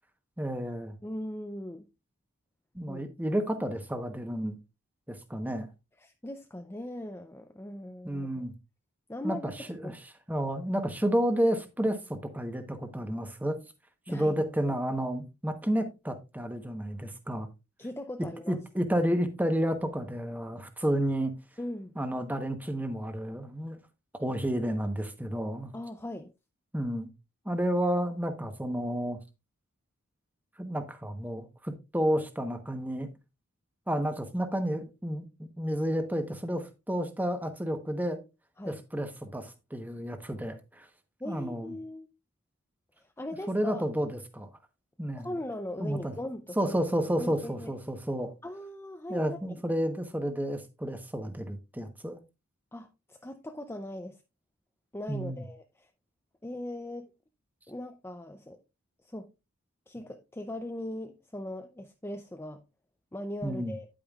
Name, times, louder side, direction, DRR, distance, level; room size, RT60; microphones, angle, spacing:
voice 1, 0.4-0.9 2.7-4.6 5.1-5.7 8.0-8.5 9.2-10.0 10.3-13.6 14.1-17.5 18.5-21.3 22.0-23.8 24.1-25.7 26.7-27.1 27.4-29.2 30.6-33.1 33.9-35.3 35.6-38.2 38.7-40.9 41.2-41.7 43.5-44.5 45.0-45.4 45.8-46.1 46.6-48.3 49.1-52.2 55.1-55.4 63.4-63.7, equal, 10° right, 1.0 m, -31 dB
voice 2, 1.0-1.9 2.9-3.0 6.0-8.4 9.1-9.5 9.8-9.9 14.1-14.4 14.7-14.8 17.8-18.6 21.6-21.9 25.7-26.3 38.6-38.8 41.2-42.1 43.0-43.8 45.2-46.8 47.2-47.7 48.4-49.6 52.7-54.2 54.9-55.9 56.4-57.1 57.7-58.6 59.0-59.3 59.9-62.6 63.1-63.9, left 1 dB, 10° left, 0.5 m, -39 dB
9.9 x 8.8 x 2.4 m
head